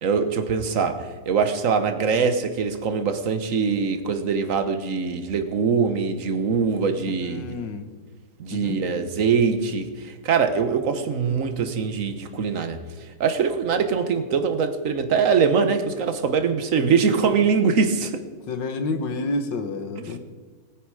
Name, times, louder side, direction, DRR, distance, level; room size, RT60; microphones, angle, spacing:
voice 1, 0.0-7.5 8.4-12.8 13.2-18.2 20.0-20.2, right 5 dB, 50° right, 9 dB, 1.5 m, -23 dB
voice 2, 7.2-7.9 8.5-8.8 18.5-20.2, left 3 dB, 85° left, 8 dB, 2.0 m, -29 dB
20.5 x 9.8 x 4.9 m, 1.5 s
omnidirectional pair, 1.9 m